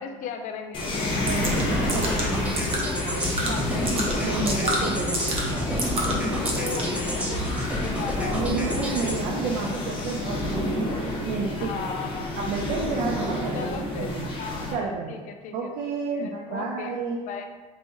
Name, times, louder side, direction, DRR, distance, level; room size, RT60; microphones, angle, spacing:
voice 1, 0.0-3.9 4.5-8.8 9.7-10.4 11.6-12.4 13.4-15.7 16.1-16.9 17.3-17.4, left 6 dB, 60° left, 5 dB, 0.5 m, -38 dB
sound 1, 0.7-14.7, left 1 dB, 35° left, 1.0 m, -29 dB
sound 2, 1.2-7.1, right 1 dB, 40° right, 0.9 m, -31 dB
sound 3, 1.3-9.2, equal, 10° right, 0.7 m, -32 dB
voice 2, 1.3-2.3 3.0-3.3 4.2-5.4 8.3-10.9 11.3-11.9 12.4-14.3 14.7-15.2 15.5-17.2, right 4 dB, 75° right, -1 dB, 0.5 m, -31 dB
4.6 x 3.0 x 2.6 m, 1.3 s
cardioid pair, 125°, 14 cm